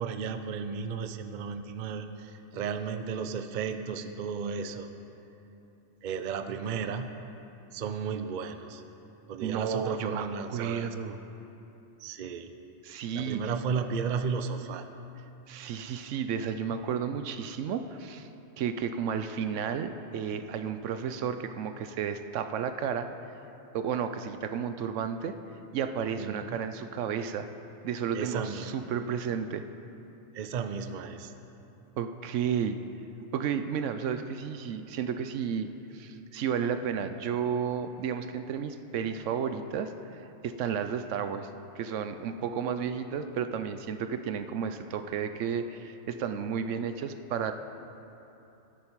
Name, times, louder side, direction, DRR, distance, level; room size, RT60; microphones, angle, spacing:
voice 1, 0.0-4.9 6.0-7.1 7.7-8.8 9.3-10.9 12.0-12.5 13.1-14.9 26.2-26.6 28.1-28.7 30.3-31.3, right 6 dB, 50° right, 8 dB, 0.6 m, -34 dB
voice 2, 9.4-11.2 12.8-13.4 15.5-18.3 18.6-23.1 23.7-25.4 25.7-27.5 27.8-29.6 32.0-32.8 33.3-41.5 41.8-47.5, right 7 dB, 75° right, 9 dB, 0.9 m, -32 dB
13.0 x 9.6 x 4.6 m, 3.0 s
omnidirectional pair, 1.3 m